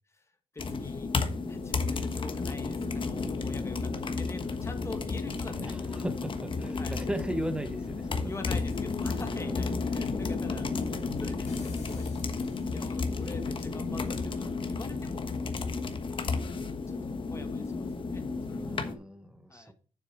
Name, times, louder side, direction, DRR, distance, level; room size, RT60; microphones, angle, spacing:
voice 1, 0.5-1.1 1.5-5.8 6.8-6.9 8.1-12.1 12.7-15.4 16.3-18.8 19.5-19.7, left 3 dB, 20° left, 1.5 m, -45 dB
sound 1, 0.6-18.9, left 4 dB, 45° left, 1.3 m, -32 dB
voice 2, 5.5-8.3 9.3-9.8 18.5-19.7, equal, 5° right, 1.2 m, -37 dB
sound 2, 11.5-13.3, left 4 dB, 70° left, 2.1 m, -47 dB
7.3 x 6.7 x 4.7 m
cardioid pair, 110°, 12 cm